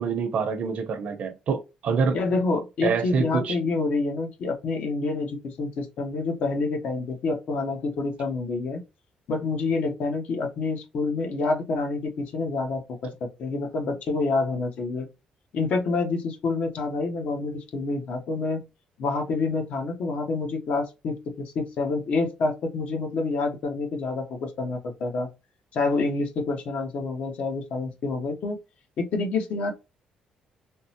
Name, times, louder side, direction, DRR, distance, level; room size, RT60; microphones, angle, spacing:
voice 1, 0.0-2.2 2.8-3.6, right 5 dB, 55° right, 0.7 m, -26 dB
voice 2, 2.1-8.8 9.3-15.1 15.5-18.7 19.0-25.3 25.7-28.6 29.0-29.7, left 3 dB, 60° left, 0.9 m, -27 dB
3.6 x 2.0 x 2.7 m
cardioid pair, 135°, 3 cm